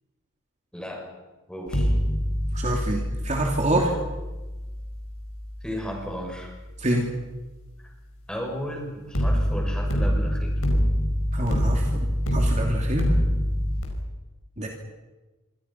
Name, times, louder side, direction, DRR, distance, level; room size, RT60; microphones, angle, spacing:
voice 1, 0.7-1.1 1.5-1.9 2.7-3.0 5.6-6.5 7.8-7.9 8.3-10.6, equal, 5° left, 0 dB, 6.9 m, -34 dB
sound 1, 1.7-6.7 9.1-13.9, equal, 85° left, 5.5 m, -25 dB
voice 2, 2.5-3.9 6.8-7.1 11.3-13.1 14.6-14.7, right 1 dB, 35° right, 1 dB, 2.7 m, -26 dB
27.0 x 25.0 x 5.9 m, 1.2 s
head